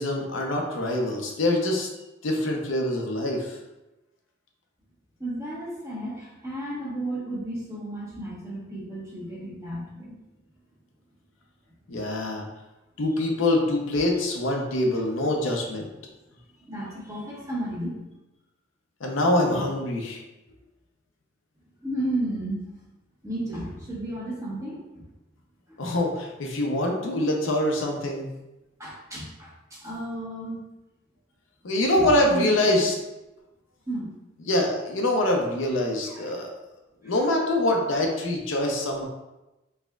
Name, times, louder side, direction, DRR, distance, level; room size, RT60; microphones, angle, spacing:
voice 1, 0.0-1.9 2.2-3.6 11.9-12.4 13.0-15.9 19.0-20.2 25.8-28.3 31.6-32.9 34.4-36.5 37.0-39.0, left 1 dB, 85° left, 1 dB, 0.7 m, -24 dB
voice 2, 5.2-10.1 13.1-13.2 16.7-18.0 21.8-22.6 23.2-25.1 25.7-25.8 28.8-30.6 31.8-32.6 33.9-34.1 36.0-36.3 37.0-37.3, right 1 dB, 15° right, -6 dB, 1.1 m, -33 dB
4.3 x 3.4 x 2.3 m, 1.0 s
head